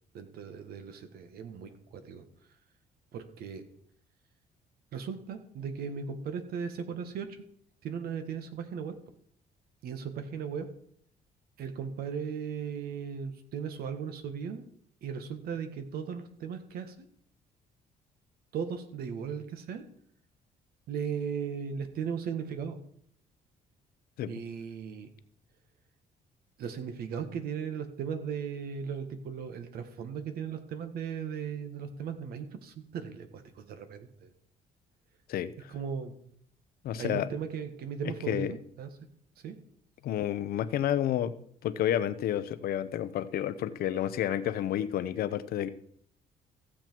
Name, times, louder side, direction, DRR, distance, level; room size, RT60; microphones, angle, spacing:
voice 1, 0.1-2.2 3.1-3.6 4.9-7.4 7.8-8.9 9.8-10.7 11.6-14.6 15.0-17.0 18.5-19.8 20.9-22.8 24.3-25.1 26.6-34.3 35.7-36.1 36.9-38.9 39.4-39.6, right 7 dB, 75° right, 1.6 m, -37 dB
voice 2, 36.8-37.3 38.3-38.5 40.0-41.3 41.6-45.7, left 11 dB, 70° left, 0.8 m, -30 dB
15.5 x 7.6 x 4.6 m
cardioid pair, 140°, 16 cm